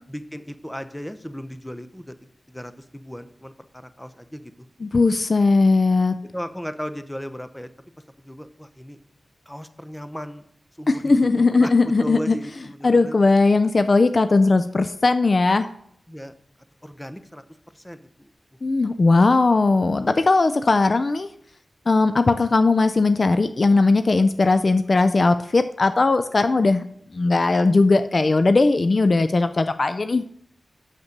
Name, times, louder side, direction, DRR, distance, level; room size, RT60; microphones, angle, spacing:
voice 1, 0.1-4.5 6.3-7.7 8.2-9.0 9.5-10.4 10.8-11.7 12.0-13.2 16.1-16.3 16.8-18.3, equal, 10° left, 11 dB, 0.8 m, -36 dB
voice 2, 4.8-6.2 10.9-12.4 12.8-15.7 18.6-21.3 21.9-26.8 27.1-30.2, left 3 dB, 50° left, 11 dB, 0.4 m, -18 dB
7.1 x 6.7 x 6.5 m, 0.68 s
cardioid pair, 55°, 0 cm